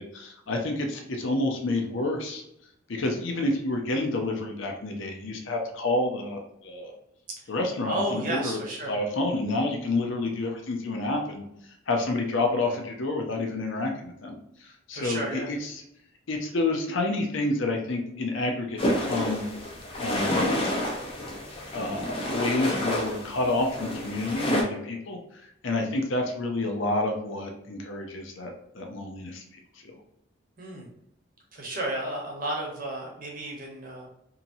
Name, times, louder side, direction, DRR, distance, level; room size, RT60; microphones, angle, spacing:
voice 1, 0.0-2.4 2.9-6.9 7.5-8.6 8.9-11.4 11.9-15.8 16.3-19.4 20.0-20.4 21.7-25.2 25.6-29.4 29.8-30.0, left 2 dB, 70° left, 3 dB, 0.6 m, -29 dB
voice 2, 7.9-9.0 14.9-15.5 30.6-30.9 31.5-34.1, right 1 dB, 45° right, -2 dB, 0.9 m, -32 dB
sound 1, 18.8-24.6, left 1 dB, 25° left, 0.6 m, -29 dB
2.9 x 2.7 x 2.6 m, 0.79 s
head